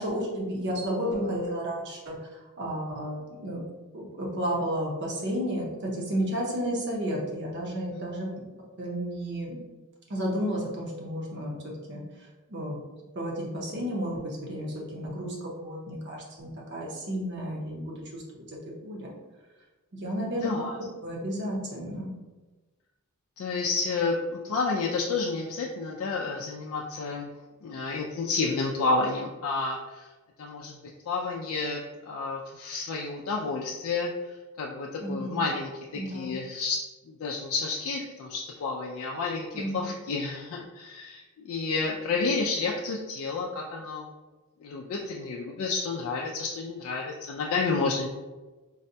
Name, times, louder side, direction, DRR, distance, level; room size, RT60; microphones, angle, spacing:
voice 1, 0.0-2.2 2.6-3.6 3.9-8.3 8.8-9.6 10.1-11.5 11.9-12.0 12.5-12.8 13.1-19.1 19.9-20.5 21.0-22.1 35.0-35.4 35.9-36.3 39.5-39.9, equal, 50° right, -2 dB, 0.7 m, -32 dB
voice 2, 20.4-20.8 23.4-27.3 27.6-30.1 30.4-30.8 31.1-36.8 37.0-44.1 44.6-48.1, left 4 dB, 70° left, -1 dB, 0.3 m, -30 dB
3.9 x 2.2 x 2.7 m, 1.2 s
head